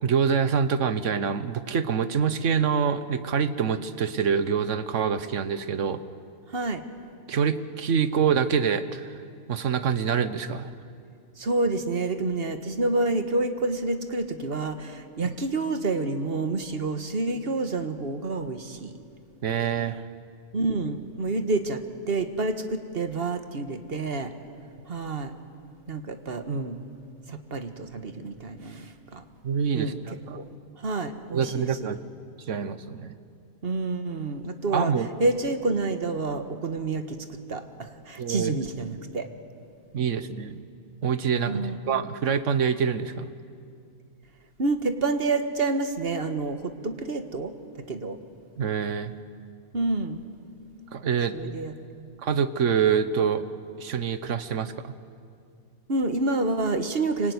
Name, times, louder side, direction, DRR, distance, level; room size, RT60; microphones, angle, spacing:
voice 1, 0.0-6.0 7.3-9.1 9.5-10.7 15.2-15.4 19.4-20.1 29.4-29.9 30.3-30.4 31.3-32.0 32.5-33.1 34.7-35.1 38.2-38.5 39.9-40.6 41.0-43.3 48.6-49.1 50.9-51.3 52.2-53.4 53.8-54.7, right 7 dB, 65° right, 12 dB, 1.4 m, -25 dB
voice 2, 6.5-6.8 11.4-18.9 20.5-24.3 24.9-25.3 25.9-26.8 27.3-29.2 29.7-30.0 30.3-30.4 30.8-32.0 33.6-34.9 35.2-39.3 41.5-41.8 44.6-47.5 47.9-48.2 49.7-50.2 51.3-52.1 55.9-57.3, right 3 dB, 45° right, 7 dB, 1.7 m, -28 dB
25.0 x 24.5 x 9.6 m, 2.4 s
omnidirectional pair, 1.4 m